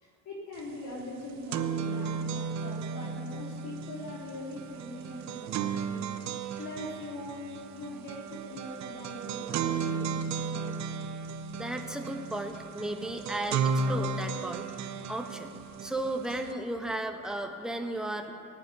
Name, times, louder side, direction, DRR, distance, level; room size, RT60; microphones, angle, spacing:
voice 1, 0.0-6.1 6.6-10.8, left 1 dB, 65° left, -5 dB, 3.5 m, -42 dB
sound 1, 0.6-0.7 1.0-16.5, right 5 dB, 60° right, 0.9 m, -34 dB
voice 2, 11.5-15.5 15.8-18.3, right 1 dB, ahead, 3 dB, 1.3 m, -35 dB
17.5 x 8.2 x 9.6 m, 2.5 s
cardioid pair, 115°, 32 cm